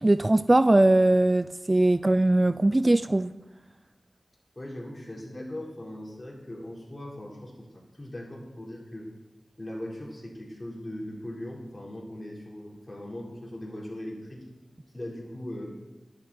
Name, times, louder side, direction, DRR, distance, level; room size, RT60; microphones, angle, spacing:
voice 1, 0.0-3.3, right 1 dB, 30° right, 14 dB, 0.3 m, -21 dB
voice 2, 4.6-9.1 9.6-14.4 14.9-15.7, left 1 dB, 25° left, -4 dB, 4.0 m, -39 dB
11.5 x 10.5 x 4.3 m, 1.2 s
wide cardioid pair, 55°, 0 cm